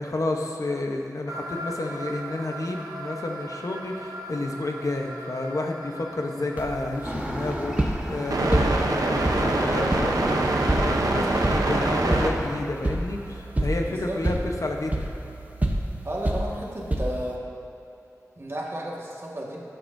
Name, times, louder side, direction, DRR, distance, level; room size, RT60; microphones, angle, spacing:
voice 1, 0.0-15.1, left 2 dB, 60° left, 2 dB, 0.9 m, -30 dB
sound 1, 1.3-12.3, right 2 dB, 80° right, 0.8 m, -28 dB
sound 2, 6.6-17.4, right 1 dB, 25° right, 0.9 m, -29 dB
sound 3, 7.0-12.6, equal, 5° right, 1.5 m, -35 dB
voice 2, 13.9-14.2 16.0-17.4 18.4-19.6, right 1 dB, 45° right, -3 dB, 1.7 m, -33 dB
15.0 x 8.0 x 2.7 m, 2.8 s
wide cardioid pair, 50°, 6 cm